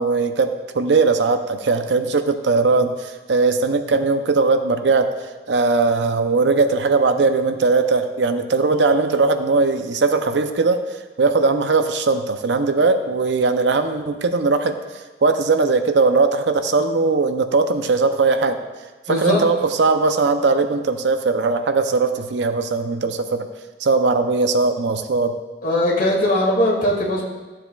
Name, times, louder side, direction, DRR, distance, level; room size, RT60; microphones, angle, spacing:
voice 1, 0.0-5.1 5.5-10.8 11.2-14.8 15.2-18.6 19.1-23.5 23.8-25.4, right 3 dB, 70° right, 8 dB, 0.6 m, -19 dB
voice 2, 19.1-19.4 25.6-27.2, left 1 dB, 50° left, -3 dB, 2.0 m, -19 dB
13.5 x 7.4 x 2.3 m, 1.2 s
head